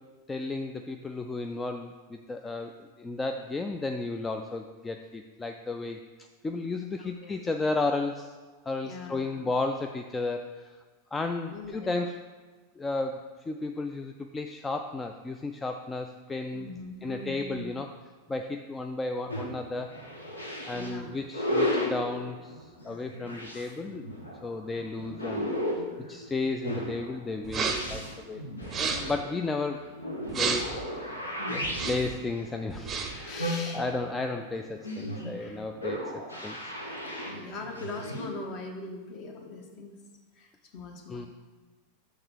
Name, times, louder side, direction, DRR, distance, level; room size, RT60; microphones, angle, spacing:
voice 1, 0.3-6.0 6.4-8.3 8.7-10.7 11.1-12.1 12.8-16.7 17.0-17.9 18.3-19.9 20.7-24.0 24.4-25.5 26.1-28.4 28.7-29.8 30.4-31.1 31.5-33.4 33.7-36.7 41.1-41.3, left 3 dB, 15° left, 5 dB, 0.3 m, -33 dB
voice 2, 7.0-7.4 8.8-9.5 11.5-12.1 16.5-17.7 20.7-21.1 31.4-31.8 33.2-33.8 35.4-35.6 37.0-39.9 40.3-41.3, left 2 dB, 35° left, 2 dB, 1.1 m, -41 dB
sound 1, 19.3-38.3, left 1 dB, 80° left, 1.2 m, -35 dB
sound 2, 27.5-28.0 28.6-29.2 30.3-30.8 31.6-32.2 32.7-33.3, right 5 dB, 25° right, 0.6 m, -31 dB
6.5 x 3.5 x 6.1 m, 1.4 s
figure-of-eight pair, 90°, 0 cm